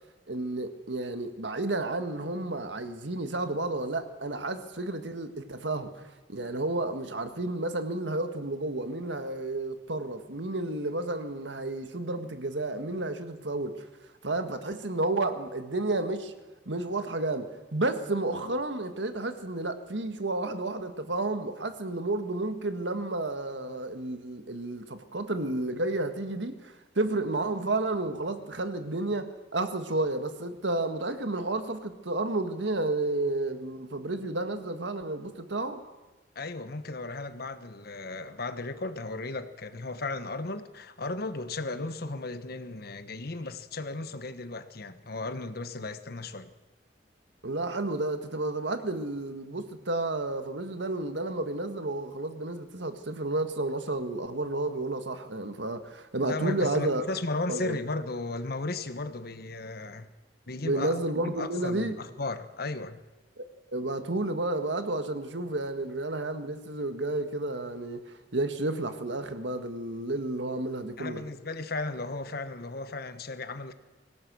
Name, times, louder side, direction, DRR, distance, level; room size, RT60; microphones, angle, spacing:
voice 1, 0.3-13.9 14.2-16.3 16.7-35.8 47.4-57.0 57.5-57.8 60.6-62.0 63.4-63.5 63.7-68.0 68.3-71.2, right 2 dB, 75° right, 1.8 m, -31 dB
voice 2, 36.3-46.5 56.2-60.1 60.5-63.0 71.0-73.7, left 2 dB, 60° left, 1.3 m, -35 dB
25.0 x 17.0 x 6.4 m
head